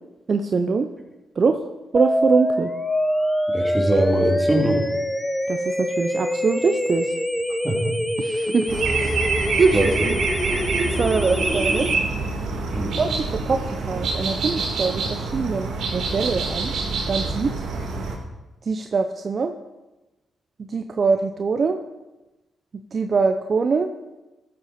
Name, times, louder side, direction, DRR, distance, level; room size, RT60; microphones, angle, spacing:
voice 1, 0.3-0.9 1.4-1.7 1.9-2.7 5.5-7.1 8.2-9.2 9.6-9.8 10.0-10.2 10.8-11.9 13.0-16.7 17.1-17.5 18.7-19.5 20.7-21.8 22.9-23.9, right 4 dB, 50° right, 7 dB, 0.6 m, -23 dB
sound 1, 1.9-11.9, equal, 5° left, 0.8 m, -25 dB
voice 2, 3.5-4.8 7.6-7.9 9.7-10.1 12.7-13.0, right 1 dB, 10° right, 0 dB, 2.9 m, -22 dB
sound 2, 8.7-18.2, right 3 dB, 70° right, 1.8 m, -26 dB
14.0 x 7.8 x 4.2 m, 1.1 s
supercardioid pair, 55°, 0 cm